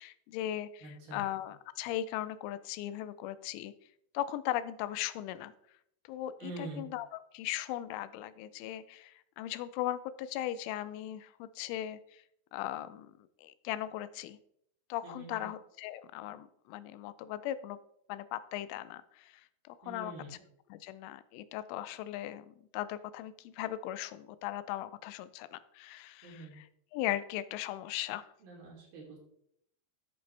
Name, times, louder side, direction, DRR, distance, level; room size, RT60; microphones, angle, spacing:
voice 1, 0.0-3.7 4.1-5.5 6.1-7.1 7.3-12.2 12.5-13.1 13.4-14.4 14.9-17.8 18.1-20.1 20.7-26.6 26.9-28.3, left 13 dB, 85° left, 14 dB, 3.1 m, -38 dB
voice 2, 0.8-1.3 6.4-6.9 15.0-15.5 19.8-20.4 26.2-26.6 28.4-29.2, right 2 dB, 55° right, -2 dB, 4.5 m, -45 dB
11.5 x 7.9 x 3.3 m, 0.71 s
omnidirectional pair, 5.4 m